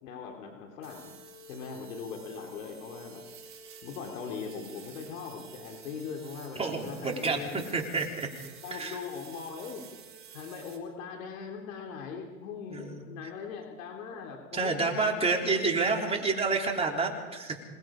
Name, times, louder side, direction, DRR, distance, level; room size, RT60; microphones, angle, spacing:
voice 1, 0.0-1.1 1.5-3.2 3.8-7.8 8.6-9.9 10.3-15.4, left 6 dB, 70° left, 2 dB, 3.5 m, -40 dB
sound 1, 0.8-10.8, right 4 dB, 30° right, 4.1 m, -49 dB
voice 2, 6.6-7.4 7.7-8.3 8.7-9.0 12.7-13.0 14.5-17.6, right 4 dB, 15° right, 1 dB, 3.7 m, -29 dB
27.0 x 20.5 x 5.1 m, 1.3 s
hypercardioid pair, 120°, 42 cm